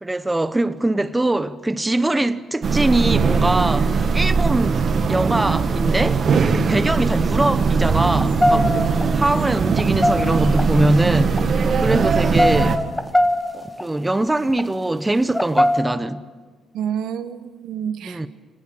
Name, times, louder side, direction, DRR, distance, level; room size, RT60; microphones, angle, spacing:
voice 1, 0.0-6.2 6.5-12.9 13.5-16.2 18.0-18.3, right 1 dB, 15° right, 1.0 m, -22 dB
sound 1, 2.6-12.8, right 5 dB, 50° right, 1.7 m, -20 dB
sound 2, 7.4-7.5 8.1-9.0 9.6-10.6 11.2-11.4 11.9-13.8 14.4-14.6 15.3-15.8, left 1 dB, 10° left, 1.8 m, -20 dB
voice 2, 8.5-8.8 9.1-9.2 11.9-12.1 16.7-18.3, right 8 dB, 80° right, 1.3 m, -28 dB
25.5 x 19.0 x 8.9 m
cardioid pair, 90°, 0 cm